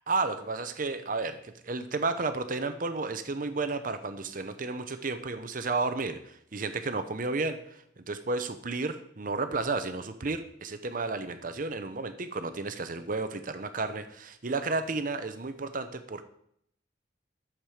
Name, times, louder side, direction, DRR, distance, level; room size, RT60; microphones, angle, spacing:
voice 1, 0.1-16.2, right 3 dB, 45° right, 9 dB, 0.7 m, -32 dB
12.0 x 7.4 x 4.9 m, 0.69 s
head